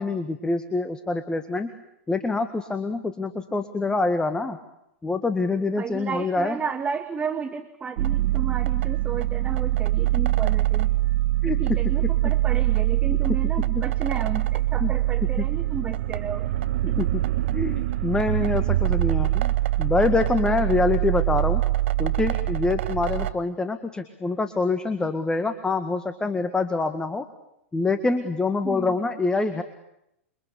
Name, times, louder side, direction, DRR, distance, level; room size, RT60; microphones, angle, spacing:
voice 1, 0.0-1.7 2.1-4.6 5.0-6.6 11.4-11.8 13.3-13.4 13.7-13.8 14.8-14.9 15.4-15.5 17.0-17.2 17.5-21.6 22.0-27.3 27.7-29.6, left 3 dB, 10° left, 9 dB, 1.8 m, -25 dB
voice 2, 5.8-11.0 11.5-16.5 16.9-17.0 28.6-29.0, right 6 dB, 20° right, 8 dB, 1.7 m, -33 dB
sound 1, 8.0-23.3, right 15 dB, 60° right, 1.4 m, -24 dB
28.5 x 24.0 x 8.6 m, 0.82 s
figure-of-eight pair, 100°, 7 cm